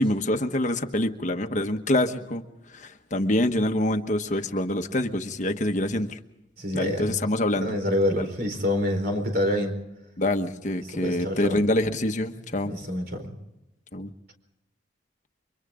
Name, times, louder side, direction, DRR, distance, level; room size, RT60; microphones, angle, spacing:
voice 1, 0.0-2.4 2.7-6.2 6.7-7.7 8.2-8.3 10.2-12.7 13.9-14.1, left 1 dB, 40° left, 6 dB, 1.2 m, -26 dB
voice 2, 6.6-7.2 7.6-9.8 11.0-11.6 12.7-13.3, left 1 dB, 55° right, 5 dB, 4.4 m, -26 dB
30.0 x 24.0 x 3.7 m, 0.88 s
head